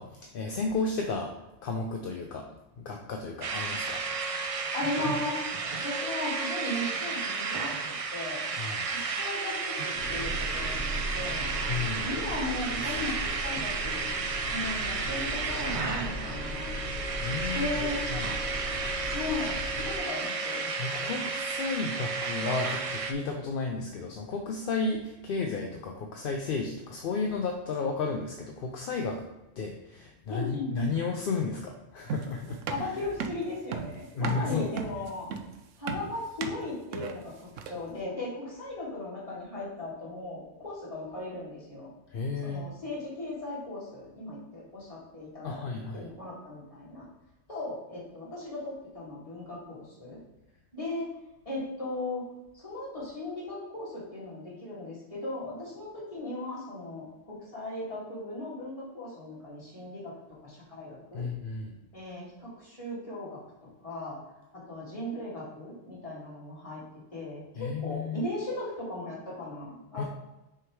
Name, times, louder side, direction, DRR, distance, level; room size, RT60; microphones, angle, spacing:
voice 1, 0.0-1.3 1.6-2.5 2.8-4.0 8.6-8.9 11.7-12.1 12.8-13.1 17.2-17.8 18.1-18.3 20.8-29.3 29.6-32.9 34.1-34.7 42.1-42.7 45.4-46.1 61.1-61.8 67.6-68.2 70.0-70.1, left 4 dB, 55° left, 2 dB, 0.7 m, -33 dB
sound 1, 3.4-23.1, right 4 dB, 50° right, 0.4 m, -32 dB
voice 2, 4.7-5.4 5.8-8.4 8.9-11.5 12.0-14.1 14.5-16.7 17.5-18.0 19.1-20.6 30.3-30.9 32.7-35.3 35.8-37.3 37.7-41.9 42.4-45.6 45.9-47.1 47.5-50.2 50.7-51.1 51.5-52.2 52.5-60.1 60.4-61.2 61.9-63.4 63.8-64.2 64.5-66.8 67.1-70.1, left 2 dB, 30° left, -7 dB, 2.4 m, -37 dB
sound 2, 9.9-20.0, equal, 70° left, 1.4 m, -38 dB
sound 3, 32.1-37.9, right 6 dB, 85° right, 0.9 m, -36 dB
6.1 x 3.6 x 4.6 m, 0.96 s
omnidirectional pair, 1.3 m